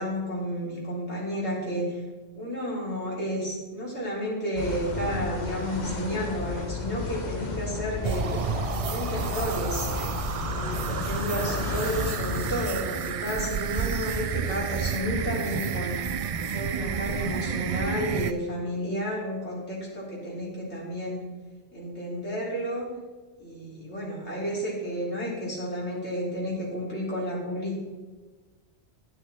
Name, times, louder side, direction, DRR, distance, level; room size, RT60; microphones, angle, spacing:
voice 1, 0.0-2.0 2.4-8.4 8.8-10.2 10.5-16.0 16.5-21.2 21.7-22.9 23.4-27.8, equal, 80° left, -5 dB, 3.9 m, -31 dB
sound 1, 4.6-12.7, left 4 dB, 40° left, 1.3 m, -33 dB
sound 2, 8.0-18.3, right 7 dB, 60° right, 0.3 m, -30 dB
10.5 x 10.0 x 4.2 m, 1.3 s
omnidirectional pair, 1.1 m